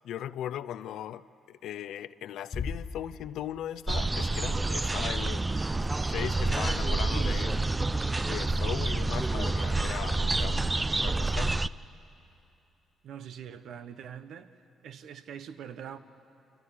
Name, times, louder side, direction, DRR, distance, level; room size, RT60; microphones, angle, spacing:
voice 1, 0.0-5.5 6.1-7.6 8.3-11.5, left 11 dB, 80° left, 0.5 m, -38 dB
Bass drum, 2.5-3.9, left 5 dB, 40° left, 1.1 m, -38 dB
sound 1, 3.9-11.7, right 2 dB, 20° right, 0.5 m, -28 dB
voice 2, 13.0-14.6 14.8-16.0, right 8 dB, 75° right, 1.0 m, -43 dB
29.0 x 14.0 x 9.7 m
cardioid pair, 90°, 0 cm